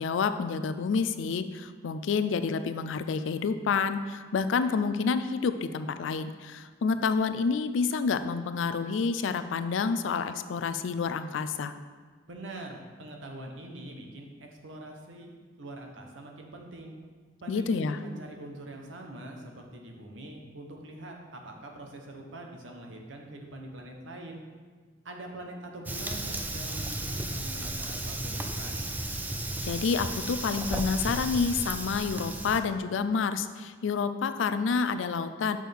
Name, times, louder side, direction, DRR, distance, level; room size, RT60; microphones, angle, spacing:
voice 1, 0.0-11.7 17.5-18.0 29.7-35.6, left 5 dB, 85° left, 11 dB, 0.4 m, -29 dB
voice 2, 12.3-15.3 15.6-17.0 17.4-24.4 25.0-28.8, right 1 dB, 90° right, 2 dB, 0.9 m, -43 dB
Fire, 25.9-32.6, right 1 dB, 10° right, 0.3 m, -34 dB
6.4 x 6.0 x 3.4 m, 1.5 s
head